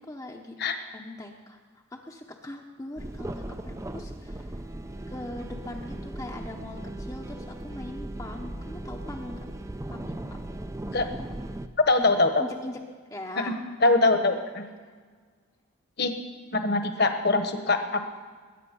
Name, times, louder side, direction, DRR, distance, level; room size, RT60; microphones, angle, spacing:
voice 1, 0.0-0.6 0.9-1.6 1.9-4.5 5.1-9.4 9.9-10.4 12.0-12.1 12.4-12.8 13.1-13.6, left 1 dB, 15° left, -1 dB, 0.8 m, -40 dB
sound 1, 3.0-11.7, right 1 dB, 15° right, 0.5 m, -37 dB
voice 2, 11.9-12.4 13.8-14.7 16.0-16.1 16.5-18.1, left 2 dB, 50° left, 7 dB, 1.3 m, -23 dB
21.5 x 9.3 x 5.4 m, 1.5 s
head